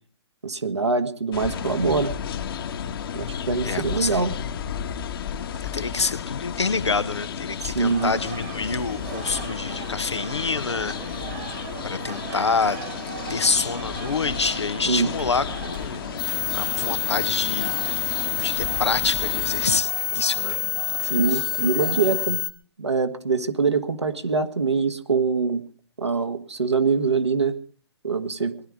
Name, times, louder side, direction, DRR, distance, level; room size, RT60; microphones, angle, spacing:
voice 1, 0.4-2.1 3.1-4.4 7.6-8.1 14.9-15.1 21.0-22.4 22.8-25.6 26.0-27.6 28.0-28.6, right 4 dB, 90° right, 6 dB, 1.9 m, -24 dB
sound 1, 1.3-19.8, left 8 dB, 55° left, 1.7 m, -33 dB
voice 2, 3.6-4.2 5.7-11.0 11.8-12.8 13.3-16.0 16.5-20.6 20.9-21.0 21.3-21.5, left 4 dB, 85° left, 12 dB, 1.1 m, -27 dB
sound 2, 7.8-22.3, right 10 dB, 45° right, 1.5 m, -40 dB
sound 3, 16.2-22.5, left 12 dB, 25° left, 1.2 m, -27 dB
20.0 x 11.5 x 4.9 m, 0.42 s
figure-of-eight pair, 125°, 14 cm